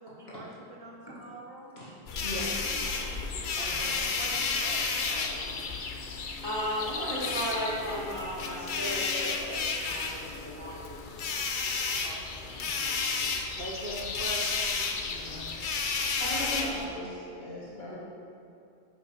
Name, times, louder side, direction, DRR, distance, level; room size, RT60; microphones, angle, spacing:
voice 1, 0.0-1.7 3.6-5.5 12.0-12.8 13.1-15.5, right 1 dB, 60° right, -2 dB, 1.3 m, -43 dB
sound 1, 2.1-16.8, left 4 dB, 55° left, 0.8 m, -32 dB
voice 2, 2.2-3.0 16.2-17.9, left 1 dB, 70° left, -8 dB, 2.6 m, -37 dB
voice 3, 6.4-11.1, equal, 25° left, -8 dB, 2.0 m, -35 dB
8.2 x 5.6 x 5.3 m, 2.7 s
omnidirectional pair, 1.1 m